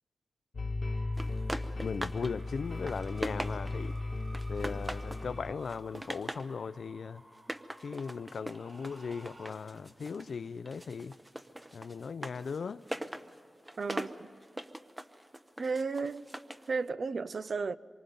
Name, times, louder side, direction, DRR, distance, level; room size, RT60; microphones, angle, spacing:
sound 1, 0.5-5.5, left 2 dB, 50° left, 1.1 m, -36 dB
sound 2, 0.8-9.5, right 1 dB, 35° right, 4.1 m, -56 dB
sound 3, 1.2-2.3 2.7-3.9 4.3-5.3 5.6-6.5 7.3-10.3 10.7-16.7, right 1 dB, 15° right, 0.8 m, -41 dB
voice 1, 1.8-3.9 4.5-7.2 7.8-11.2 11.7-12.8, left 5 dB, 70° left, 0.5 m, -38 dB
voice 2, 13.8-14.3 15.6-16.2 16.7-17.8, right 4 dB, 55° right, 0.5 m, -33 dB
26.0 x 24.0 x 5.4 m
wide cardioid pair, 130°, 0 cm